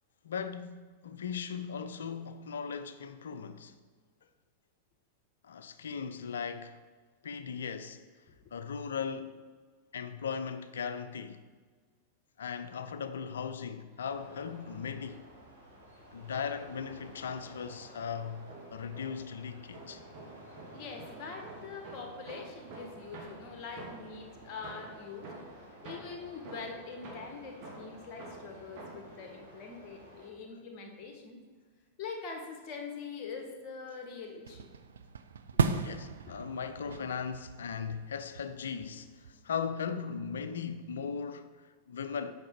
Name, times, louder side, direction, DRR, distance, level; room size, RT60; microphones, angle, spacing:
voice 1, 0.2-3.7 5.4-6.8 7.2-8.0 8.5-9.4 9.9-11.4 12.4-15.3 16.1-20.0 35.7-42.3, left 6 dB, 65° left, 0.5 m, -38 dB
sound 1, 14.1-30.3, right 1 dB, 90° right, 2.1 m, -53 dB
sound 2, 18.3-19.4 19.7-24.2 24.6-29.2, right 2 dB, 45° right, 1.9 m, -48 dB
voice 2, 20.7-31.4 32.0-34.7 36.2-36.3, left 5 dB, 35° left, 1.4 m, -44 dB
sound 3, 34.5-39.8, right 5 dB, 70° right, 0.5 m, -36 dB
8.6 x 5.9 x 4.5 m
figure-of-eight pair, 90°, 0 cm